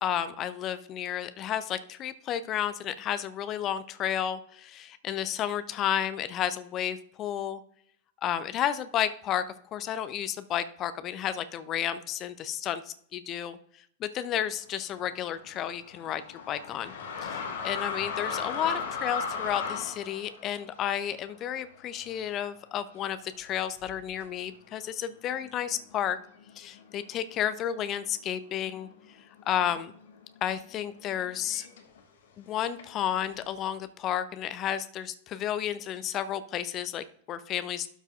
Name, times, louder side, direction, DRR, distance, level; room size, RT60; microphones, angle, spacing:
voice 1, 0.0-7.6 8.2-9.4 9.7-13.6 14.0-16.9 17.2-26.2 26.6-28.9 29.5-29.9 30.4-31.7 32.4-37.9, left 10 dB, 35° left, 13 dB, 0.5 m, -32 dB
sound 1, 14.9-22.6 22.9-23.0 23.8-24.2 25.0-25.1 25.4-27.1 27.4-28.0 28.2-32.0 32.8-33.6, left 5 dB, 60° left, 1.1 m, -38 dB
12.0 x 6.5 x 2.4 m, 0.64 s
figure-of-eight pair, 90°, 0 cm